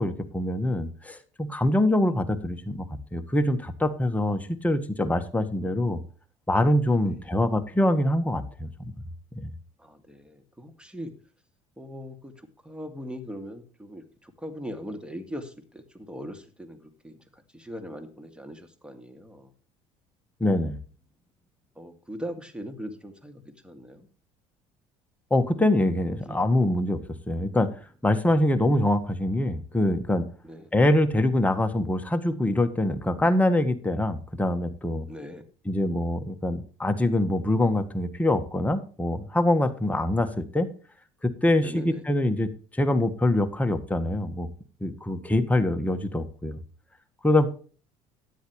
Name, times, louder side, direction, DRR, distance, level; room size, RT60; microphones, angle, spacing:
voice 1, 0.0-6.0 6.5-8.9 9.3-9.5 20.4-20.8 25.3-27.0 27.3-27.7 28.0-30.3 30.7-35.1 35.6-40.7 41.2-44.5 44.8-46.6 47.2-47.5, left 1 dB, 10° left, 7 dB, 1.5 m, -24 dB
voice 2, 9.8-11.1 11.8-19.5 21.8-24.1 26.1-26.4 30.4-30.7 35.1-35.5 41.6-42.0, equal, 5° right, 8 dB, 2.4 m, -40 dB
13.0 x 9.9 x 3.1 m, 0.39 s
hypercardioid pair, 65°, 16 cm